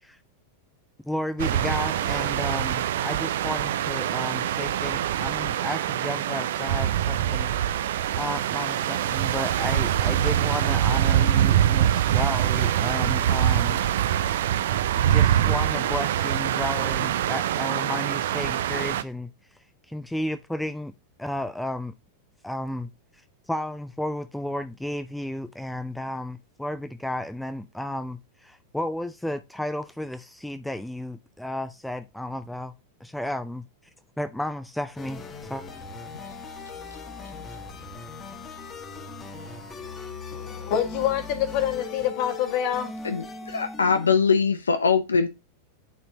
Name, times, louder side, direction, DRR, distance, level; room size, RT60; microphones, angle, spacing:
voice 1, 1.0-7.5 8.2-13.8 15.0-19.3 19.9-20.9 21.2-21.9 22.4-22.9 23.5-32.7 33.0-33.6 34.2-35.2 35.5-35.6, left 1 dB, 5° left, 0.5 m, -33 dB
sound 1, 1.4-19.0, right 11 dB, 60° right, 0.5 m, -24 dB
sound 2, 35.0-44.2, left 3 dB, 20° left, 1.2 m, -39 dB
voice 2, 40.3-42.9, left 10 dB, 45° left, 1.6 m, -26 dB
voice 3, 43.0-45.3, left 5 dB, 75° left, 0.6 m, -22 dB
9.4 x 4.4 x 2.8 m
figure-of-eight pair, 90°, 0 cm